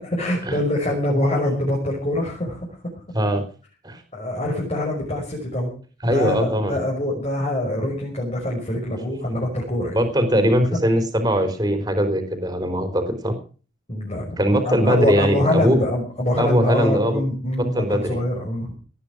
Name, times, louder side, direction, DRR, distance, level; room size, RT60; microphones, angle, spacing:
voice 1, 0.0-2.7 4.1-5.7 6.0-10.0 13.9-18.8, left 1 dB, 35° left, -2 dB, 5.8 m, -24 dB
voice 2, 6.0-6.8 9.9-13.4 14.4-15.8 16.4-17.2 17.7-18.2, equal, 20° right, 7 dB, 3.9 m, -21 dB
18.5 x 10.5 x 6.3 m, 0.39 s
head